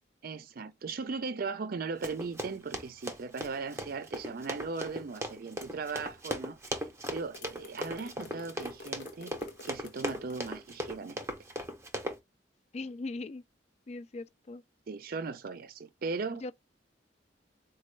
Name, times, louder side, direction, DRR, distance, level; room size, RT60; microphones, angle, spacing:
voice 1, 0.2-9.3 9.6-11.2 14.9-16.5, right 4 dB, 55° right, 0.5 m, -38 dB
Run, 2.0-12.2, right 1 dB, 15° right, 0.7 m, -38 dB
sound 1, 7.3-10.4, left 3 dB, 80° left, 0.7 m, -49 dB
voice 2, 12.7-13.4 13.9-14.6 16.4-16.5, left 3 dB, 40° left, 0.4 m, -39 dB
4.2 x 2.2 x 3.1 m
head